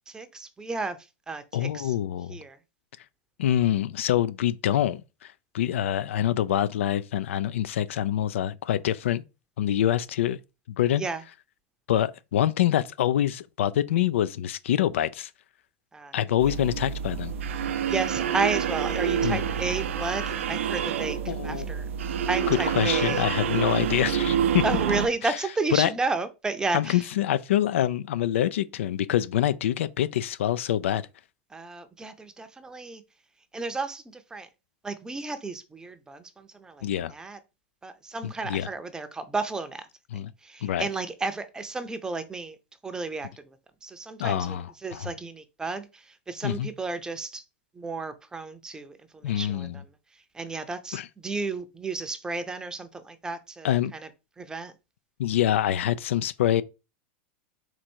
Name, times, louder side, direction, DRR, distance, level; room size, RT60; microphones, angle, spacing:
voice 1, 0.1-1.0 1.3-1.9 2.3-2.6 11.0-11.2 15.9-16.1 17.9-21.9 22.3-23.2 24.6-27.0 31.5-33.0 33.5-34.5 34.8-37.4 37.8-39.9 40.4-42.6 42.8-43.3 43.8-47.4 47.8-49.8 50.3-54.1 54.4-54.7, right 3 dB, 10° right, 0.6 m, -32 dB
voice 2, 1.5-2.4 3.4-9.2 9.6-10.4 10.8-11.0 11.9-15.3 16.1-17.3 19.2-19.4 21.3-21.7 22.5-24.6 25.2-25.4 25.7-25.9 26.7-31.0 36.8-37.1 38.2-38.7 40.1-40.3 40.6-40.9 44.2-45.1 46.4-46.7 49.2-49.8 50.9-51.1 53.6-53.9 55.2-56.6, left 11 dB, 85° left, 0.4 m, -25 dB
sound 1, 16.4-25.1, right 8 dB, 85° right, 0.5 m, -27 dB
4.4 x 2.6 x 4.4 m
supercardioid pair, 125°, 7 cm